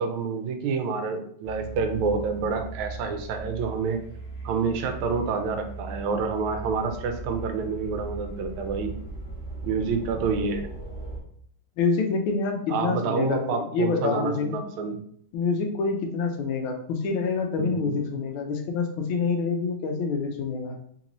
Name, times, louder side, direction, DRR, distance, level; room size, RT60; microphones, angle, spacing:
voice 1, 0.0-4.0 4.4-8.9 9.6-10.7 12.7-15.0 17.6-18.0, right 5 dB, 90° right, 5 dB, 1.4 m, -28 dB
sound 1, 1.4-11.2, right 3 dB, 30° left, 0.5 m, -38 dB
voice 2, 11.8-14.5 15.3-20.8, left 4 dB, 85° left, 4 dB, 1.5 m, -27 dB
3.9 x 2.6 x 2.9 m, 0.63 s
omnidirectional pair, 2.2 m